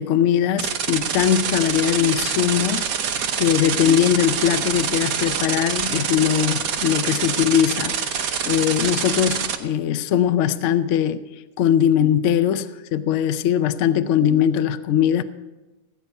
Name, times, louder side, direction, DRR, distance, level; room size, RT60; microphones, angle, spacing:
voice 1, 0.0-3.1 3.4-11.2 11.6-15.2, left 10 dB, 65° left, 0.7 m, -20 dB
sound 1, 0.6-9.5, right 7 dB, 60° right, 1.3 m, -25 dB
17.0 x 8.4 x 5.3 m
omnidirectional pair, 1.8 m